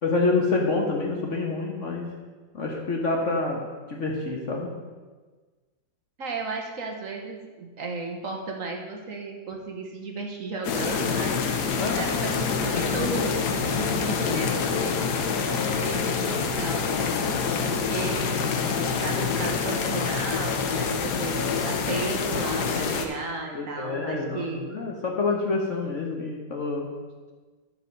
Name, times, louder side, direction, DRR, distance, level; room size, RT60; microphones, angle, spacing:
voice 1, 0.0-2.1 2.5-4.7 11.8-12.3 14.2-14.4 23.5-26.9, left 3 dB, 50° left, 0 dB, 1.2 m, -27 dB
voice 2, 6.2-11.4 12.0-15.1 15.6-16.9 17.6-18.5 19.0-24.7, right 3 dB, 50° right, 1 dB, 1.5 m, -34 dB
sound 1, 10.6-23.1, left 5 dB, 65° left, 1.4 m, -26 dB
11.0 x 4.9 x 6.6 m, 1.4 s
omnidirectional pair, 2.0 m